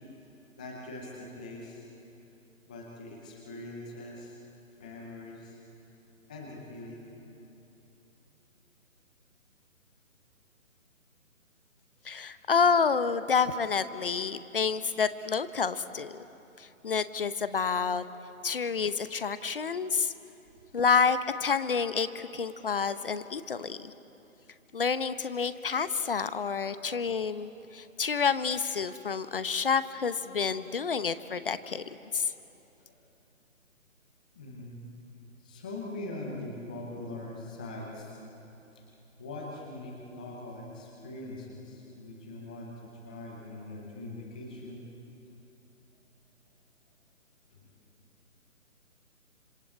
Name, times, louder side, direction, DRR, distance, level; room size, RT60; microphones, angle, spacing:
voice 1, 0.6-1.8 2.7-4.4 4.8-5.6 6.3-7.1 20.5-20.6 32.8-32.9 34.3-34.8 35.4-38.2 38.7-38.8 39.2-42.8 43.0-44.8 47.6-47.7, left 2 dB, 5° left, -2 dB, 0.6 m, -42 dB
voice 2, 12.0-16.2 16.6-18.0 18.4-20.1 20.7-23.9 24.7-31.8 32.1-32.3, left 6 dB, 40° left, 13 dB, 0.9 m, -29 dB
26.5 x 26.0 x 8.7 m, 3.0 s
figure-of-eight pair, 150°, 42 cm